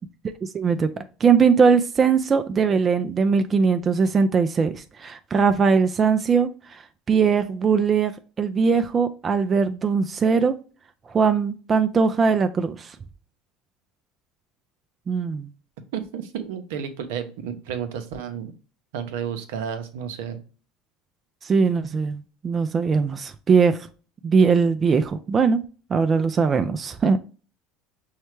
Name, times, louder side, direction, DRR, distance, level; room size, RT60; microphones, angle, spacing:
voice 1, 0.4-0.9 1.2-6.8 7.1-8.1 8.4-10.5 11.1-12.9 15.1-15.5 21.4-23.9 24.2-25.6 25.9-27.2, right 5 dB, 30° right, 8 dB, 0.4 m, -20 dB
voice 2, 15.9-18.5 18.9-20.4, right 8 dB, 80° right, 8 dB, 0.6 m, -31 dB
5.5 x 2.2 x 3.1 m, 0.36 s
supercardioid pair, 100°, 0 cm